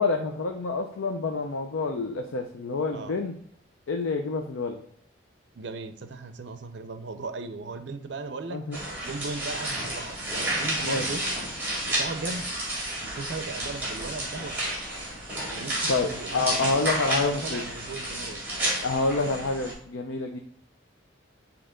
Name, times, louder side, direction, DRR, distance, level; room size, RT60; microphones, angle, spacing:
voice 1, 0.0-3.3 3.9-4.8 8.5-8.8 10.8-11.0 15.9-17.6 18.8-20.4, left 3 dB, 90° left, 4 dB, 0.5 m, -28 dB
voice 2, 5.5-11.2 11.8-12.5 13.0-14.7 15.5-18.7, right 3 dB, 65° right, 9 dB, 0.5 m, -37 dB
sound 1, 8.7-19.7, right 1 dB, 10° right, 2.1 m, -31 dB
8.5 x 2.9 x 3.7 m, 0.69 s
head